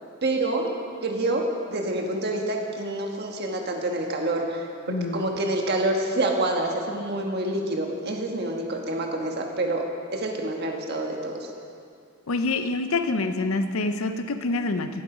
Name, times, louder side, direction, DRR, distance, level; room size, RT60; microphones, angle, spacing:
voice 1, 0.2-0.7 1.0-9.8 10.1-11.5, right 2 dB, 50° right, 1 dB, 1.4 m, -27 dB
voice 2, 4.9-5.3 12.3-15.0, left 3 dB, 85° left, 9 dB, 0.7 m, -26 dB
17.0 x 7.8 x 5.0 m, 2.4 s
head